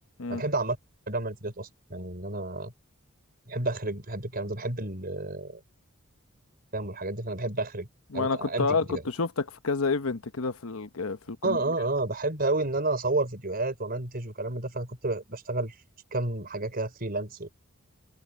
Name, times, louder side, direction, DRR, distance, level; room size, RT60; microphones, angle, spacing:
voice 1, 0.3-0.8 1.1-2.7 3.5-5.6 6.7-7.9 8.1-9.0 11.4-15.7 16.1-17.6, right 2 dB, 45° right, 4.8 m, -30 dB
voice 2, 8.1-11.7, left 4 dB, 80° left, 1.0 m, -29 dB
head